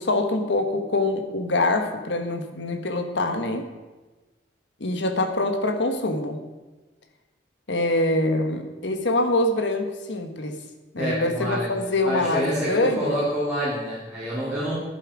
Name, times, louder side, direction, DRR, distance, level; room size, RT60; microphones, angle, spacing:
voice 1, 0.0-3.6 4.8-6.4 7.7-10.6 10.9-13.2, left 2 dB, 75° left, 7 dB, 1.3 m, -24 dB
voice 2, 11.0-11.7 12.0-14.7, equal, 5° right, -9 dB, 2.7 m, -27 dB
11.0 x 9.9 x 4.9 m, 1.2 s
head